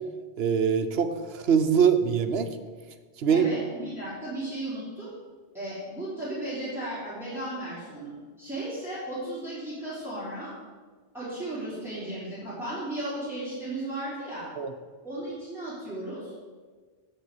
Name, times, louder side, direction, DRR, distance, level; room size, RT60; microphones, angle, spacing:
voice 1, 0.4-2.5 3.2-3.4 14.6-14.7, right 7 dB, 65° right, 8 dB, 1.0 m, -23 dB
voice 2, 3.3-5.1 5.5-8.1 8.4-10.5 11.1-14.5 15.0-16.4, right 1 dB, ahead, -10 dB, 3.4 m, -35 dB
7.9 x 7.0 x 8.1 m, 1.5 s
omnidirectional pair, 1.2 m